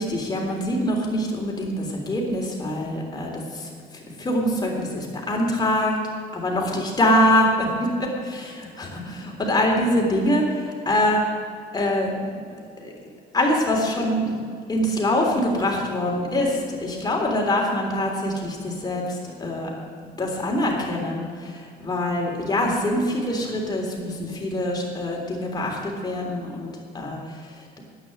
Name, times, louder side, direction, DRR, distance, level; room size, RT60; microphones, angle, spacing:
voice 1, 0.0-5.9 6.3-7.9 8.8-11.2 11.7-12.1 12.8-12.9 13.3-14.3 14.7-19.7 20.2-27.6, left 1 dB, 25° left, -1 dB, 3.5 m, -24 dB
11.0 x 9.4 x 7.9 m, 2.2 s
cardioid pair, 110°, 17 cm